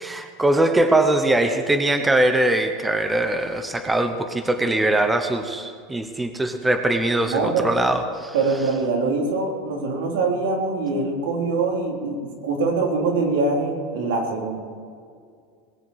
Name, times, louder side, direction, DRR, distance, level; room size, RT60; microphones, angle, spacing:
voice 1, 0.0-8.3, right 1 dB, 5° right, 7 dB, 0.8 m, -21 dB
voice 2, 7.3-7.7 8.3-12.2 12.4-14.6, right 3 dB, 85° right, 0 dB, 3.7 m, -23 dB
21.0 x 7.3 x 8.5 m, 2.2 s
supercardioid pair, 160°, 0 cm